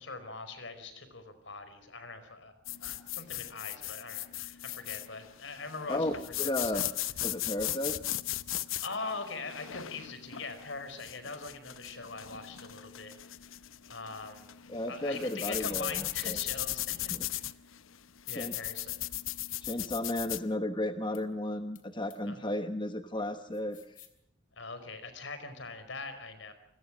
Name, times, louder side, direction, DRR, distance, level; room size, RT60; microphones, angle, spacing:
voice 1, 0.0-2.5 2.8-6.9 8.7-13.1 13.9-14.5 14.9-17.5 18.3-19.0 22.3-22.4 24.6-26.5, left 3 dB, 65° left, 10 dB, 4.9 m, -42 dB
sound 1, 2.7-20.5, left 14 dB, 85° left, 0.9 m, -38 dB
voice 2, 6.4-6.8 7.2-8.0 14.7-16.4 17.1-17.3 18.3-18.6 19.6-23.8, left 1 dB, 25° left, 8 dB, 1.1 m, -34 dB
sound 2, 17.4-17.6 18.9-19.6 21.1-21.2 21.8-21.9 22.1-22.2 23.5-24.2, left 12 dB, 40° left, 2.8 m, -55 dB
28.5 x 22.5 x 6.3 m, 0.77 s
head